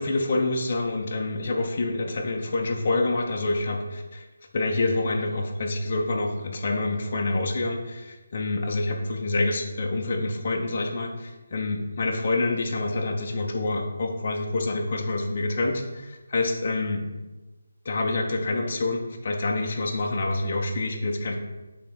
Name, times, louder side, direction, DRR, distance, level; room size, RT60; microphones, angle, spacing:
voice 1, 0.0-4.3 4.5-17.0 17.8-21.4, left 2 dB, 30° left, 1 dB, 0.7 m, -27 dB
5.4 x 3.6 x 5.8 m, 1.1 s
hypercardioid pair, 180°, 0 cm